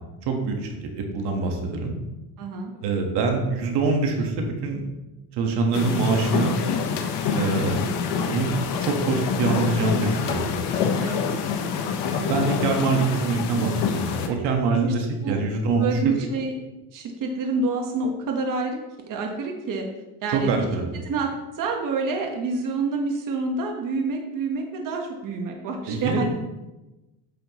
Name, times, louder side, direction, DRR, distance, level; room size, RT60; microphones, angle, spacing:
voice 1, 0.2-1.9 2.8-4.8 5.4-6.6 7.3-7.8 8.2-8.5 8.8-10.5 12.3-16.1 20.3-20.9 25.9-26.3, right 4 dB, 75° right, 2 dB, 1.6 m, -24 dB
voice 2, 2.4-2.7 7.6-7.9 10.9-11.4 12.1-12.4 14.7-14.9 15.2-15.4 15.8-16.5 16.9-18.8 19.1-19.8 20.2-20.6 21.0-26.3, right 3 dB, 50° right, 2 dB, 1.3 m, -28 dB
sound 1, 5.7-14.3, left 6 dB, 85° left, 1.0 m, -26 dB
8.9 x 7.4 x 3.1 m, 1.0 s
cardioid pair, 125°, 40 cm